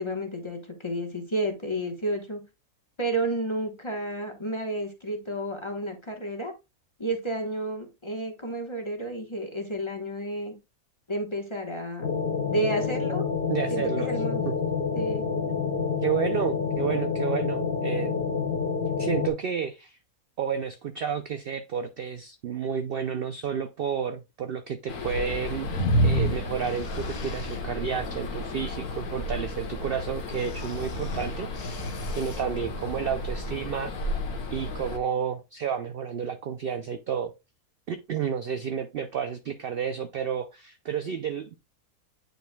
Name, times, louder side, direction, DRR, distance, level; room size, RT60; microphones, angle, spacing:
voice 1, 0.0-2.4 3.0-6.5 7.0-10.5 11.1-12.1 12.5-13.3 13.7-14.4 14.9-15.2, right 1 dB, 20° left, 3 dB, 1.0 m, -31 dB
sound 1, 12.0-19.3, left 5 dB, 45° left, 1.0 m, -28 dB
voice 2, 13.5-14.1 14.4-14.5 16.0-18.1 19.0-20.0 20.4-25.7 26.0-31.8 32.1-33.9 34.5-37.3 37.9-41.5, right 7 dB, 75° right, 9 dB, 0.5 m, -31 dB
sound 2, 24.9-35.0, left 2 dB, 85° left, 1.6 m, -34 dB
sound 3, 25.7-27.6 30.4-32.4, equal, 70° left, 1.6 m, -28 dB
9.1 x 5.0 x 2.2 m, 0.25 s
omnidirectional pair, 1.6 m